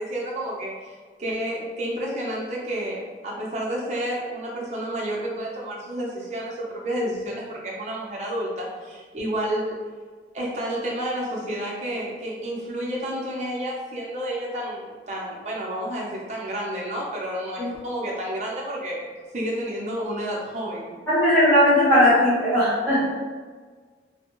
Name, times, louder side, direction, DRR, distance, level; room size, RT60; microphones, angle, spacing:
voice 1, 0.0-9.8 10.3-21.0, right 1 dB, 40° right, -4 dB, 0.6 m, -30 dB
voice 2, 21.1-23.1, left 1 dB, 15° left, -15 dB, 1.1 m, -18 dB
2.5 x 2.3 x 2.9 m, 1.5 s
head